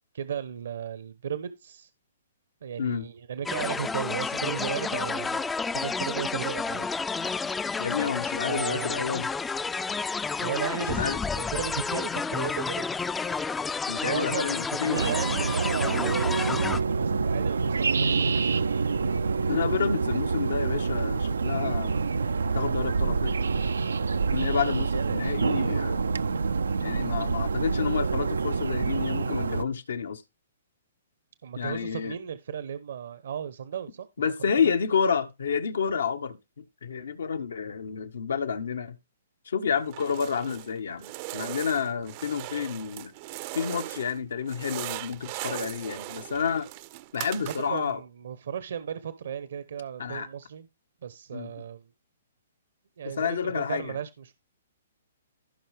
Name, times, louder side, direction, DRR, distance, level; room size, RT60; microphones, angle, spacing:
voice 1, 0.1-1.9 2.6-5.4 5.7-6.9 8.5-9.1 10.4-12.9 14.0-18.3 31.4-34.1 47.3-50.7 51.0-51.9 53.0-54.4, right 8 dB, 70° right, 1.0 m, -35 dB
sound 1, 3.5-16.8, left 4 dB, 10° left, 0.5 m, -30 dB
voice 2, 7.8-9.3 10.9-11.2 13.9-15.1 19.5-22.0 22.4-23.4 24.3-26.0 26.8-30.2 31.6-32.2 34.2-39.0 39.4-43.1 43.5-46.7 47.1-48.0 50.0-50.3 51.3-51.5 53.0-54.0, left 6 dB, 75° left, 1.5 m, -29 dB
sound 2, 14.9-29.6, right 4 dB, 85° right, 0.6 m, -27 dB
sound 3, 39.8-40.7 41.0-44.2 44.5-47.9, right 19 dB, 40° right, 0.6 m, -39 dB
15.5 x 5.6 x 3.5 m
hypercardioid pair, 135°, 0 cm